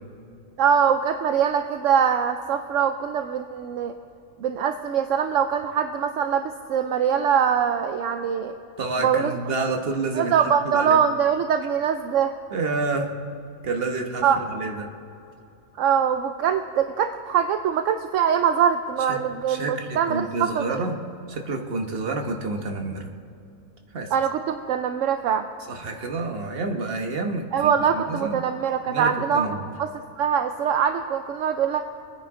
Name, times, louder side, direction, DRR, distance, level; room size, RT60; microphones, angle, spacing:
voice 1, 0.6-3.9 4.4-8.5 9.0-9.4 10.1-12.3 14.2-14.4 15.8-20.9 24.1-25.4 27.5-29.5 29.8-29.9 30.2-31.8, right 8 dB, 70° right, 8 dB, 0.8 m, -23 dB
voice 2, 8.8-10.3 10.6-11.0 12.5-13.1 13.6-14.9 19.1-19.2 19.5-21.0 21.3-23.1 23.9-24.1 25.7-28.4 28.9-29.7, right 3 dB, 40° right, 3 dB, 1.2 m, -29 dB
24.0 x 10.0 x 3.7 m, 2.7 s
omnidirectional pair, 1.6 m